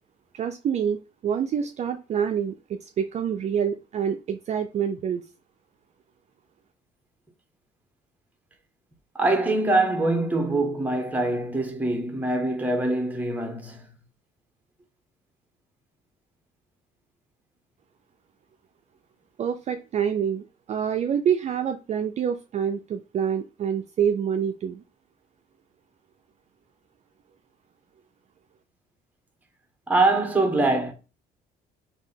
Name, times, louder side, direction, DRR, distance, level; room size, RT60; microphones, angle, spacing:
voice 1, 0.3-5.2 19.4-24.8, right 8 dB, 40° right, 0.4 m, -27 dB
voice 2, 9.1-13.9 29.9-30.9, right 2 dB, 10° right, 1.1 m, -24 dB
3.6 x 2.7 x 4.0 m
cardioid pair, 110°, 17 cm